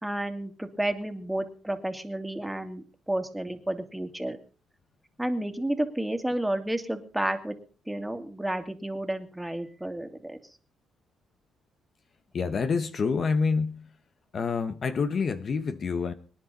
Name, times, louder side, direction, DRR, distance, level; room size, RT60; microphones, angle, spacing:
voice 1, 0.0-4.4 5.2-7.6 7.9-10.4, right 1 dB, 5° right, 7 dB, 2.4 m, -31 dB
voice 2, 12.3-13.9 14.3-16.1, left 5 dB, 45° left, 11 dB, 1.1 m, -27 dB
24.5 x 10.5 x 4.2 m, 0.38 s
cardioid pair, 90°, 0 cm